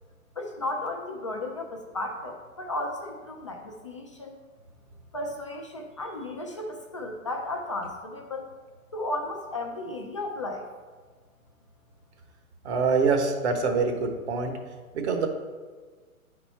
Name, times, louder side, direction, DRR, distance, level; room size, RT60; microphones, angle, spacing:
voice 1, 0.4-4.4 5.1-8.5 8.9-10.7, left 2 dB, 25° left, 1 dB, 0.3 m, -34 dB
voice 2, 12.6-14.6 14.9-15.3, right 4 dB, 50° right, 5 dB, 1.2 m, -25 dB
9.3 x 4.3 x 4.3 m, 1.5 s
hypercardioid pair, 130°, 43 cm